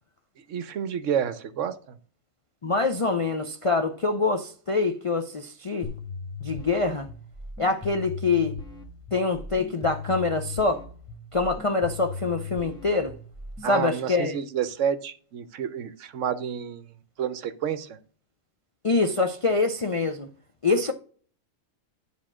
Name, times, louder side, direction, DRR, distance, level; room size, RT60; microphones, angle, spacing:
voice 1, 0.5-2.0 13.6-18.0, right 8 dB, 70° right, 1.0 m, -30 dB
voice 2, 2.6-5.9 6.4-7.1 7.6-8.6 9.1-10.8 11.3-13.2 13.7-14.4 18.8-20.3 20.6-20.9, left 3 dB, 45° left, 0.4 m, -25 dB
sound 1, 5.8-13.8, left 4 dB, 5° left, 1.2 m, -38 dB
9.8 x 3.6 x 6.1 m
omnidirectional pair, 1.4 m